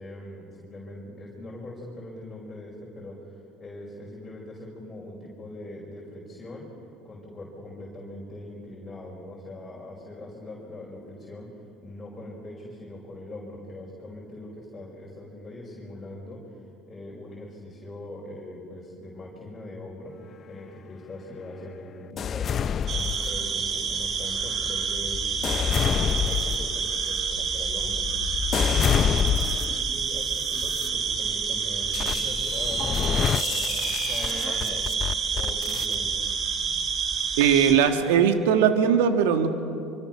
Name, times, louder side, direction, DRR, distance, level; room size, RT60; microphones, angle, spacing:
voice 1, 0.0-6.7 7.0-11.5 11.8-16.4 16.9-20.2 20.5-25.2 25.7-28.0 28.6-34.9 35.3-36.2, left 1 dB, 25° left, -3 dB, 5.6 m, -41 dB
sound 1, 22.2-23.7 24.4-29.9 30.5-30.9 31.9-36.0, left 8 dB, 40° left, 0.5 m, -28 dB
sound 2, 22.9-37.7, right 6 dB, 45° right, 4.1 m, -28 dB
voice 2, 37.4-39.5, right 8 dB, 85° right, 7 dB, 1.8 m, -20 dB
25.0 x 24.5 x 6.2 m, 2.5 s
supercardioid pair, 85°, 0 cm